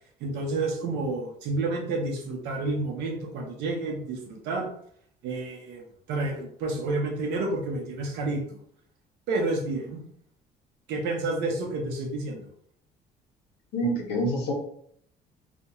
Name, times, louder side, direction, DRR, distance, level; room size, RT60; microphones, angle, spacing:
voice 1, 0.2-4.7 5.2-8.6 9.3-10.0 10.9-12.4, right 2 dB, 90° right, 2 dB, 0.7 m, -30 dB
voice 2, 13.7-14.5, equal, 75° left, 0 dB, 0.9 m, -26 dB
2.4 x 2.1 x 2.9 m, 0.65 s
cardioid pair, 110°, 17 cm